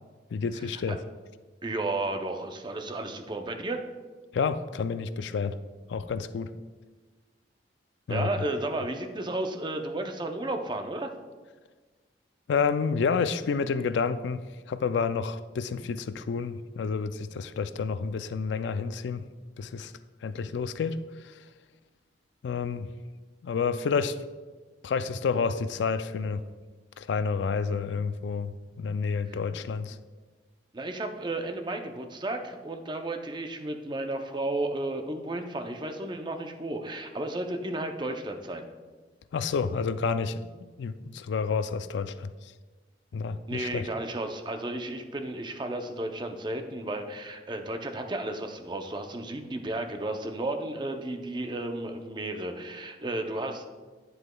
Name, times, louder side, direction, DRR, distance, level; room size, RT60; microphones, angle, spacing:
voice 1, 0.3-1.0 4.3-5.6 5.9-6.5 8.1-8.3 12.5-14.4 14.7-19.2 19.6-19.9 20.2-21.4 22.4-22.9 23.4-24.2 24.8-26.4 27.0-30.0 39.3-42.3 43.1-43.9, left 5 dB, 75° left, 12 dB, 0.3 m, -29 dB
voice 2, 1.6-3.8 8.1-11.1 29.3-29.4 30.7-38.7 43.5-53.7, right 2 dB, 25° right, 5 dB, 0.5 m, -33 dB
9.5 x 7.9 x 2.2 m, 1.4 s
head